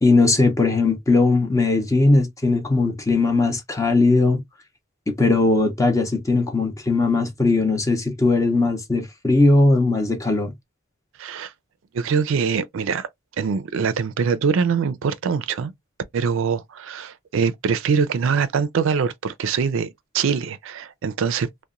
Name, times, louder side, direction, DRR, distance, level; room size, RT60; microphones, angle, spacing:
voice 1, 0.0-4.4 5.1-10.5, left 3 dB, 15° left, 0.6 m, -19 dB
voice 2, 11.2-11.5 11.9-13.1 13.4-15.7 16.1-19.9 20.1-21.5, right 6 dB, 65° right, 0.4 m, -23 dB
2.8 x 2.1 x 2.4 m
head